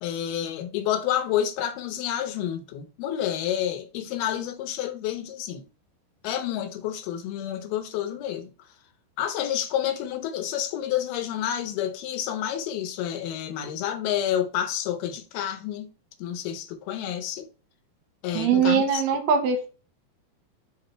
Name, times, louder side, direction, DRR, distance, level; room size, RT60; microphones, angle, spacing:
voice 1, 0.0-5.6 6.2-8.5 9.2-15.9 16.2-17.5 18.2-19.0, left 10 dB, 80° left, 2.6 m, -29 dB
voice 2, 18.3-19.7, right 6 dB, 80° right, 2.8 m, -22 dB
5.6 x 4.1 x 4.3 m
omnidirectional pair, 4.6 m